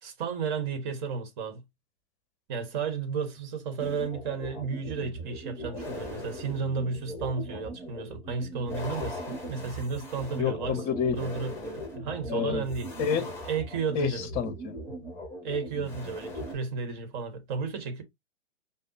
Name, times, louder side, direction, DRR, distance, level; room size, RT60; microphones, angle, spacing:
voice 1, 0.0-1.6 2.5-10.8 11.2-12.9 13.4-14.3 15.4-18.0, right 5 dB, 45° right, 1.1 m, -33 dB
sound 1, 3.8-16.6, equal, 5° left, 1.1 m, -39 dB
voice 2, 10.4-11.2 12.3-12.6 13.0-13.3 13.9-14.7, left 6 dB, 25° left, 0.8 m, -28 dB
5.2 x 2.0 x 2.6 m
hypercardioid pair, 115°, 34 cm